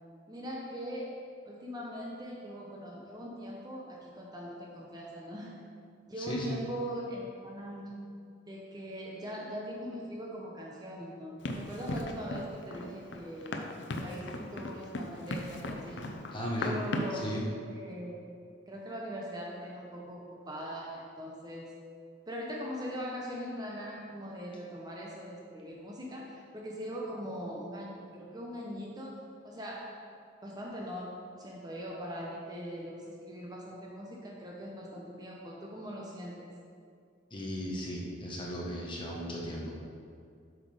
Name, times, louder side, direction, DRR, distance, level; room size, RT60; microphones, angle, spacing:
voice 1, 0.3-1.1 1.4-5.6 6.1-8.0 8.5-13.7 14.0-16.1 16.6-17.3 17.6-18.1 18.7-21.7 22.3-30.1 30.4-36.5, equal, 20° right, -2 dB, 0.9 m, -41 dB
voice 2, 6.2-6.6 16.3-16.7 17.1-17.4 37.3-39.8, equal, 25° left, -3 dB, 1.3 m, -36 dB
Run, 11.4-17.3, left 1 dB, 65° left, 0.7 m, -38 dB
7.9 x 5.8 x 5.0 m, 2.4 s
head